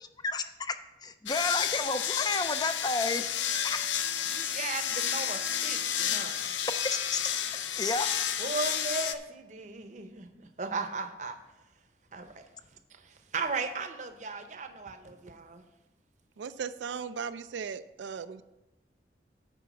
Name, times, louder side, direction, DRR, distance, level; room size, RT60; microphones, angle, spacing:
voice 1, 0.0-3.9 6.9-7.4 7.8-8.1, left 3 dB, 20° left, 10 dB, 0.4 m, -32 dB
sound 1, 1.3-9.1, left 9 dB, 85° left, 0.5 m, -31 dB
voice 2, 4.3-6.5 8.4-11.4 12.1-12.5 12.9-15.6, right 4 dB, 40° right, 8 dB, 0.7 m, -37 dB
voice 3, 16.4-18.4, right 6 dB, 80° right, 12 dB, 0.4 m, -37 dB
9.9 x 4.7 x 6.0 m, 1.0 s
head